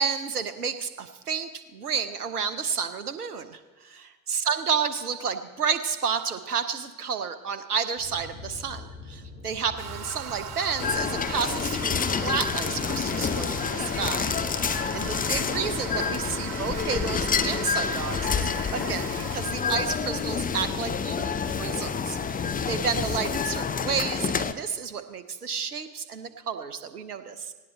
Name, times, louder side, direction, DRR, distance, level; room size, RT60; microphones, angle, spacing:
voice 1, 0.0-8.8 9.1-27.5, right 6 dB, 85° right, 11 dB, 0.7 m, -31 dB
sound 1, 8.0-23.5, left 3 dB, 70° left, 6.7 m, -43 dB
Toilet flush, 9.8-19.5, right 8 dB, 60° right, 1.9 m, -39 dB
sound 2, 10.8-24.5, left 6 dB, 20° left, 0.7 m, -28 dB
18.5 x 16.5 x 4.3 m, 1.3 s
figure-of-eight pair, 55°, 44 cm